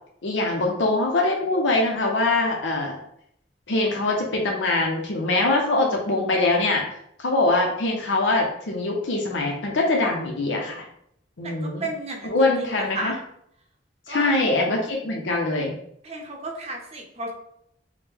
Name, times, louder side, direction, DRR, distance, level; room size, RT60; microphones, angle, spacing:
voice 1, 0.2-2.9 3.7-6.8 7.2-10.8 11.4-11.9 12.2-13.1 14.1-15.7, left 2 dB, 80° left, 0 dB, 0.7 m, -23 dB
voice 2, 11.4-13.2 14.1-14.3 16.0-17.3, right 2 dB, 35° right, 2 dB, 0.7 m, -33 dB
4.8 x 2.1 x 3.4 m, 0.72 s
head